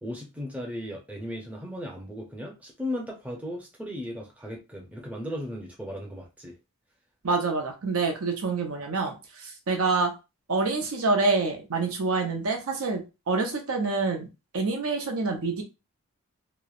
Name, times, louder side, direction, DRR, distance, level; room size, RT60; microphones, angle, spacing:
voice 1, 0.0-6.5, left 1 dB, 5° right, -1 dB, 0.5 m, -36 dB
voice 2, 7.2-10.1 10.5-14.3 14.5-15.6, right 3 dB, 80° right, 3 dB, 0.7 m, -27 dB
3.1 x 2.0 x 2.4 m, 0.27 s
head